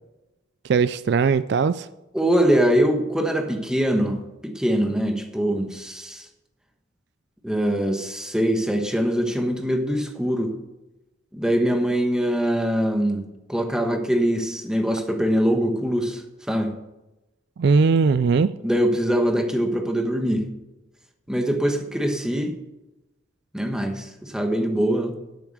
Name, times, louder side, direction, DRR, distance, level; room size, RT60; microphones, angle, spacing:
voice 1, 0.7-1.9 17.6-18.5, right 5 dB, 55° right, 15 dB, 0.3 m, -19 dB
voice 2, 2.1-6.3 7.4-10.5 11.3-16.7 18.6-20.4 21.3-22.5 23.5-25.2, equal, 5° right, 4 dB, 1.3 m, -23 dB
10.5 x 8.2 x 6.4 m, 0.99 s
head